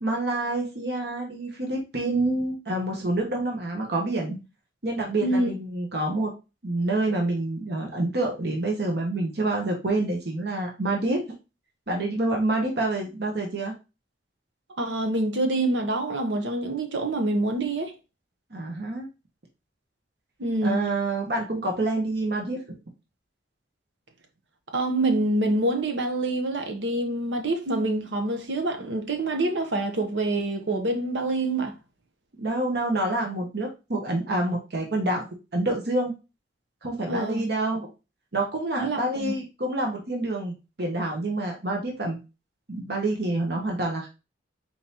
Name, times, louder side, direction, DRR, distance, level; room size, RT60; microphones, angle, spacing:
voice 1, 0.0-4.4 4.8-6.3 6.6-11.2 11.9-13.7 18.5-19.1 20.6-22.6 32.4-35.3 35.5-36.1 36.8-37.9 38.3-42.2 42.7-44.1, right 2 dB, 60° right, 1.1 m, -27 dB
voice 2, 14.8-17.9 20.4-20.8 24.7-31.7 37.1-37.4 38.8-39.3, right 2 dB, 85° right, 0.9 m, -26 dB
4.3 x 3.8 x 2.9 m
head